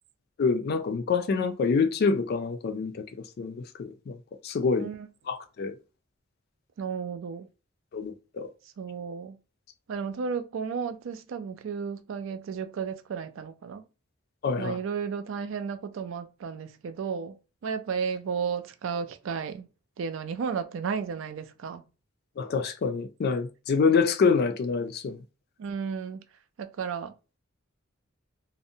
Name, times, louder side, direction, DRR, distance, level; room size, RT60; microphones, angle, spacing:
voice 1, 0.4-3.1 3.4-4.2 4.4-4.9 5.3-5.7 7.9-8.5 14.4-14.8 22.4-25.2, left 5 dB, 50° left, 0.3 m, -26 dB
voice 2, 6.8-7.5 8.8-9.4 9.9-13.8 14.6-17.4 17.6-19.7 20.0-21.8 25.6-26.2 26.6-27.1, right 6 dB, 70° right, 0.3 m, -33 dB
2.5 x 2.0 x 2.6 m
head